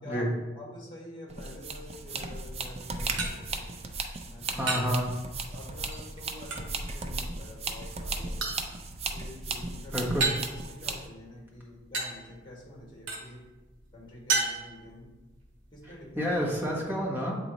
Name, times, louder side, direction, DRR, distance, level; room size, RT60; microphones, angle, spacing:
voice 1, 0.5-3.7 4.3-4.8 5.5-8.5 9.1-10.1 10.7-13.4 13.9-15.1 15.7-16.3, left 1 dB, 25° left, -3 dB, 1.9 m, -47 dB
sound 1, 1.3-11.1, right 3 dB, 30° right, 0.5 m, -36 dB
sound 2, 2.5-16.9, right 3 dB, 80° right, 1.1 m, -38 dB
voice 2, 4.5-5.0 9.9-10.3 16.2-17.4, equal, 10° right, -3 dB, 1.2 m, -29 dB
8.1 x 3.9 x 3.0 m, 1.1 s
head